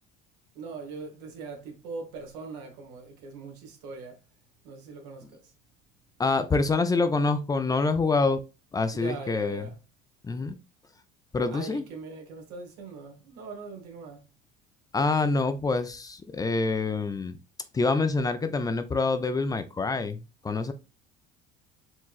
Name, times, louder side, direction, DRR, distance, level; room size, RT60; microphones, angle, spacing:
voice 1, 0.5-4.2 4.6-5.5 8.9-9.7 11.5-14.2, right 3 dB, 90° right, 1.4 m, -41 dB
voice 2, 6.2-8.4 8.7-9.7 10.2-10.6 11.3-11.8 14.9-17.4 17.7-20.7, left 3 dB, 20° left, 0.4 m, -26 dB
4.5 x 3.0 x 2.4 m
supercardioid pair, 105°, 21 cm